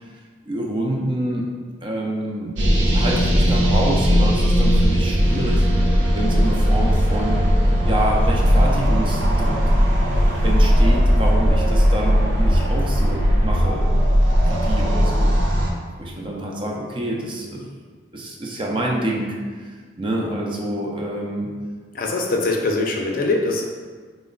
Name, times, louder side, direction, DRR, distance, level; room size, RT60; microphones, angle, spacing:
voice 1, 0.5-1.5 1.8-2.6 2.9-5.7 6.1-7.5 7.8-9.7 10.4-14.0 14.5-15.5 16.0-17.7 18.1-21.5, right 1 dB, 30° right, -2 dB, 0.4 m, -27 dB
sound 1, 2.6-15.7, equal, 85° right, 0.6 m, -18 dB
sound 2, 5.2-13.6, equal, 45° right, 1.0 m, -35 dB
sound 3, 6.2-14.9, right 1 dB, 10° right, 0.9 m, -34 dB
voice 2, 21.9-23.6, left 2 dB, 50° left, 0 dB, 0.4 m, -22 dB
4.1 x 2.1 x 3.7 m, 1.5 s
head